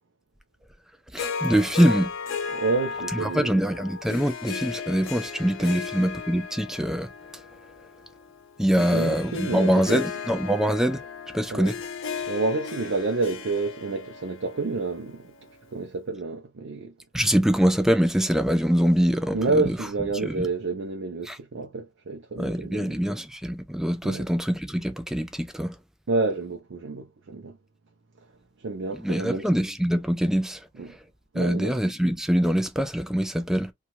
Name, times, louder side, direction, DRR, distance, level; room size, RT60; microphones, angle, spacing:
voice 1, 1.1-2.1 3.2-7.1 8.6-11.0 11.3-11.8 17.1-19.8 20.2-20.5 21.3-21.4 22.4-25.8 29.0-31.0 31.3-33.7, equal, 5° right, 0.3 m, -24 dB
Harp, 1.2-15.5, left 5 dB, 70° left, 0.6 m, -35 dB
voice 2, 2.5-3.6 5.6-5.8 8.8-10.0 11.5-11.7 12.3-15.3 15.7-16.9 19.3-23.0 24.0-24.3 26.1-27.6 28.6-29.5 30.8-30.9 31.3-31.8, right 3 dB, 70° right, 0.5 m, -29 dB
3.0 x 2.4 x 2.6 m
head